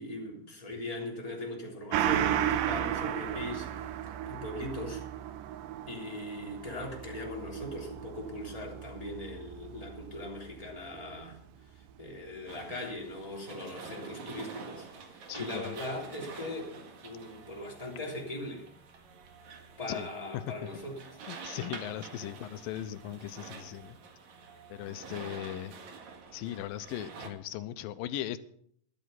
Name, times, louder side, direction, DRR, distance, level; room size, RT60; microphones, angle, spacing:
voice 1, 0.0-3.9 4.2-5.0 5.9-11.4 11.7-18.6 19.8-21.0, left 1 dB, 10° left, 3.1 m, -40 dB
Gong, 1.9-10.9 11.2-11.3, right 11 dB, 80° right, 2.5 m, -34 dB
sound 1, 12.5-27.3, right 5 dB, 60° right, 2.8 m, -47 dB
voice 2, 15.3-15.8 19.9-20.1 20.3-20.4 21.3-24.0 24.7-25.7 26.3-28.4, left 12 dB, 85° left, 2.5 m, -38 dB
12.5 x 12.0 x 5.8 m
omnidirectional pair, 4.0 m